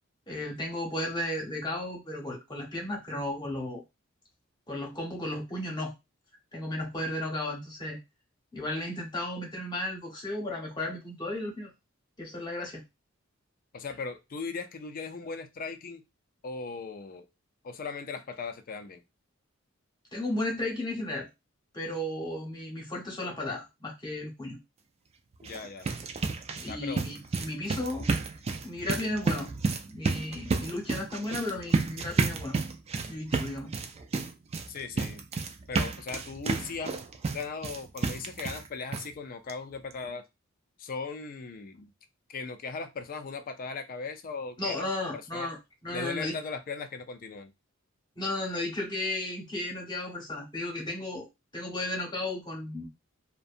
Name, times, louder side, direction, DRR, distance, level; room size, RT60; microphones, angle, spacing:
voice 1, 0.3-3.8 4.7-5.9 6.5-8.0 8.5-11.7 12.2-12.8 20.1-21.3 21.7-24.6 26.6-28.1 28.6-29.5 29.9-32.6 33.1-33.7 44.6-45.6 45.8-46.4 48.2-51.3 51.5-52.9, left 1 dB, 20° left, -1 dB, 0.9 m, -34 dB
voice 2, 13.7-16.0 16.4-17.3 17.6-19.0 25.4-26.0 26.7-27.0 34.7-35.2 35.7-37.0 37.3-40.2 40.8-41.9 42.3-44.9 45.1-45.5 45.9-47.5, left 4 dB, 45° left, 7 dB, 0.4 m, -38 dB
sound 1, 25.3-38.7 38.9-39.1 39.5-39.6 39.9-40.0, right 4 dB, 30° right, 0.3 m, -31 dB
2.6 x 2.2 x 2.4 m, 0.22 s
head